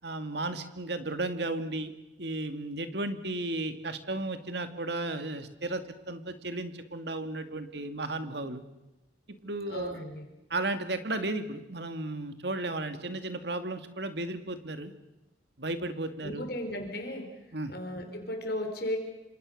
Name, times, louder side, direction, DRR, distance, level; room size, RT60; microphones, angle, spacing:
voice 1, 0.0-1.9 2.2-8.6 9.4-10.0 10.5-14.9 15.6-16.5 17.5-17.7, right 2 dB, 65° right, 9 dB, 2.3 m, -34 dB
voice 2, 9.7-10.3 16.2-17.3 17.7-19.0, left 1 dB, 55° left, 4 dB, 4.3 m, -35 dB
27.5 x 26.5 x 6.6 m, 1.0 s
head